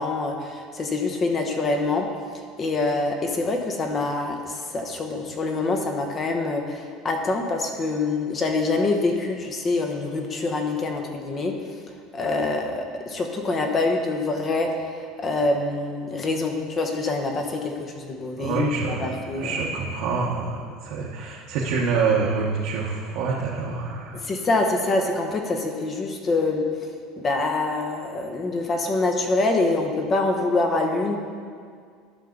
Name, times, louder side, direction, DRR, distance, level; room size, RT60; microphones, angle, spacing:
voice 1, 0.0-2.1 2.3-11.6 12.1-19.5 24.1-26.6 27.2-31.2, left 3 dB, 30° left, 3 dB, 1.1 m, -25 dB
voice 2, 18.3-24.2, right 4 dB, 70° right, -5 dB, 1.1 m, -26 dB
12.0 x 5.8 x 3.9 m, 2.1 s
supercardioid pair, 130°, 0 cm